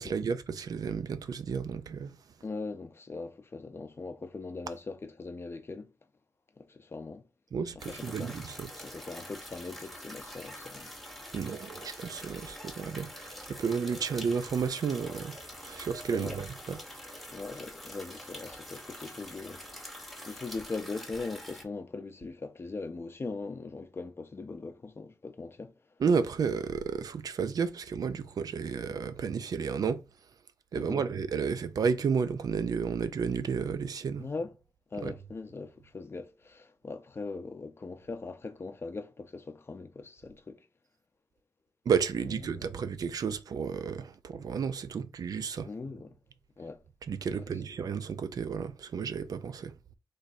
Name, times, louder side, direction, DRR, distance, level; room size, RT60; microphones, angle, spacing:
voice 1, 0.0-2.1 7.5-8.7 11.3-16.8 26.0-30.0 30.7-34.2 35.0-35.1 41.9-45.7 47.1-49.7, right 6 dB, 60° right, 0.4 m, -32 dB
voice 2, 2.4-5.9 6.6-7.3 7.8-8.4 8.8-10.9 16.1-16.4 17.3-25.8 30.7-31.0 34.2-34.6 34.9-40.7 42.2-42.6 45.6-46.2 46.6-46.8 47.3-47.6, left 3 dB, 35° left, 0.6 m, -40 dB
sound 1, 7.8-21.6, equal, ahead, 0.8 m, -45 dB
3.2 x 2.6 x 4.1 m
cardioid pair, 85°, 7 cm